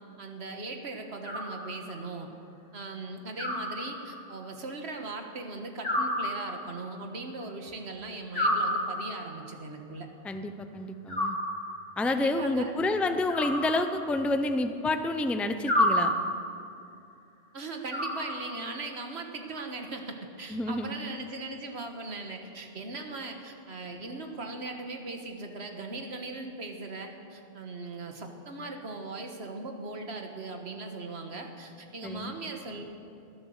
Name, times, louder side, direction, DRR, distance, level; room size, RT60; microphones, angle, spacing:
voice 1, 0.2-2.3 2.7-10.1 12.1-12.7 17.5-32.8, right 3 dB, 75° right, 4 dB, 1.7 m, -39 dB
Animal, 1.2-2.1 3.4-4.4 5.8-6.9 8.3-9.4 11.1-12.0 13.3-14.4 15.7-16.6 17.9-18.8, left 1 dB, 60° left, 3.1 m, -30 dB
voice 2, 10.2-11.4 12.0-16.1 20.5-21.0 32.0-32.3, left 2 dB, ahead, 8 dB, 0.5 m, -29 dB
19.5 x 11.0 x 6.5 m, 2.6 s
omnidirectional pair, 1.1 m